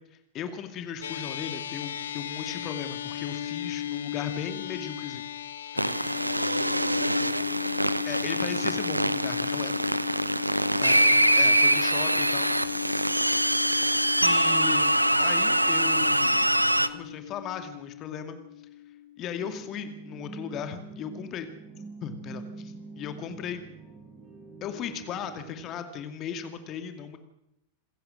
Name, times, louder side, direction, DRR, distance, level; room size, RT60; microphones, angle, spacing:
voice 1, 0.1-5.3 5.7-6.0 8.0-9.8 10.8-12.5 14.2-16.4 16.9-18.4 19.2-21.5 22.0-23.6 24.6-27.2, left 8 dB, 35° left, 8 dB, 2.3 m, -37 dB
sound 1, 1.0-19.6, left 11 dB, 65° left, 1.1 m, -36 dB
sound 2, 5.8-16.9, right 1 dB, 85° right, 0.9 m, -24 dB
voice 2, 5.9-7.7 10.5-11.1, left 2 dB, 85° left, 7 dB, 2.8 m, -48 dB
sound 3, 19.4-25.8, right 4 dB, 25° right, 5.9 m, -45 dB
27.5 x 15.5 x 6.4 m, 0.82 s
figure-of-eight pair, 90°, 0 cm